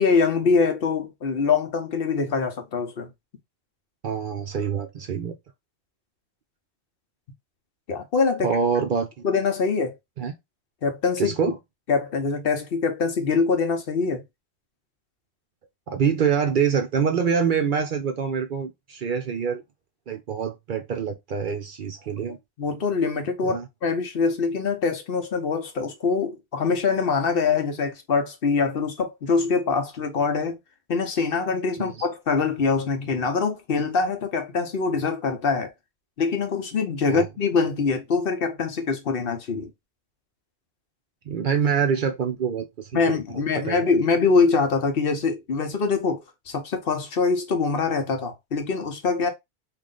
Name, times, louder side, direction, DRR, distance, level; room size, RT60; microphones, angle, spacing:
voice 1, 0.0-3.1 7.9-8.5 9.2-9.9 10.8-11.3 11.9-14.2 22.6-30.6 30.9-35.7 36.2-39.7 42.9-49.3, left 4 dB, 60° left, 0.9 m, -24 dB
voice 2, 4.0-5.4 8.4-9.1 10.2-10.3 11.2-11.6 15.9-19.6 20.1-22.4 23.4-23.6 31.8-32.1 37.1-37.3 41.3-43.2 43.5-43.9, right 6 dB, 55° right, 0.6 m, -25 dB
3.1 x 2.5 x 3.8 m
omnidirectional pair, 1.1 m